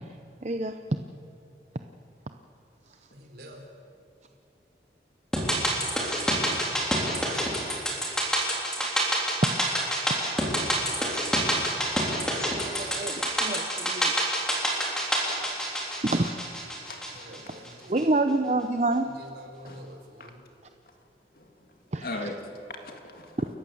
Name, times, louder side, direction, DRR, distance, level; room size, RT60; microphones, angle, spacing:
voice 1, 0.0-0.8 2.9-3.0 12.5-14.2 16.0-16.4 17.9-19.1 19.6-19.7 21.9-22.3 23.4-23.5, right 2 dB, 40° right, 7 dB, 0.7 m, -28 dB
voice 2, 3.1-3.7 7.0-7.7 17.1-17.9 19.4-20.4, equal, 65° right, 2 dB, 3.9 m, -48 dB
sound 1, 5.3-17.7 18.0-18.1, equal, 5° left, 3.6 m, -27 dB
voice 3, 12.7-13.1 16.9-17.1 17.5-17.6 19.7-19.9 21.3-21.5 22.0-23.4, left 2 dB, 55° left, 4 dB, 2.2 m, -39 dB
29.5 x 14.0 x 7.8 m, 2.7 s
head